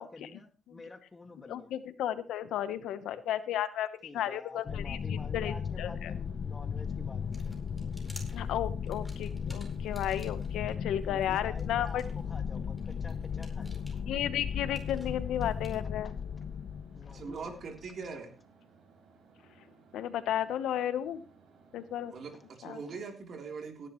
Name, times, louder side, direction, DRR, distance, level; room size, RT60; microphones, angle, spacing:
voice 1, 0.0-1.7 4.0-7.8 11.0-14.0 16.0-16.1 16.9-17.6 22.3-22.4 22.9-23.0, left 3 dB, 25° left, 7 dB, 2.0 m, -50 dB
voice 2, 1.5-5.0 5.3-6.1 8.3-12.0 14.1-16.1 19.9-21.2 21.7-22.1 22.6-22.8, left 11 dB, 85° left, 13 dB, 1.0 m, -33 dB
sound 1, 4.7-17.9, left 7 dB, 55° left, 0.5 m, -36 dB
sound 2, 5.1-22.6, right 5 dB, 75° right, 5.4 m, -61 dB
sound 3, 7.1-10.7 11.2-15.8, equal, 5° right, 4.5 m, -55 dB
voice 3, 17.1-18.3 22.1-23.9, right 5 dB, 55° right, 3 dB, 3.5 m, -41 dB
17.5 x 11.0 x 3.1 m, 0.34 s
cardioid pair, 90°, 0 cm